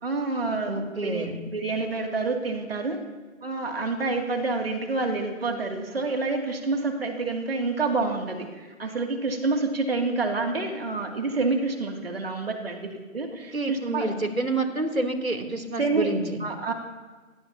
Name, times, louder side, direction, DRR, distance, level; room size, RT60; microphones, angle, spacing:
voice 1, 0.0-1.3 1.5-3.0 3.4-14.1 15.8-16.1 16.4-16.7, right 3 dB, 45° right, 2 dB, 2.8 m, -28 dB
voice 2, 0.7-1.4 13.5-16.4, right 2 dB, 80° right, 4 dB, 3.5 m, -28 dB
25.5 x 19.0 x 2.9 m, 1.3 s
figure-of-eight pair, 160°, 41 cm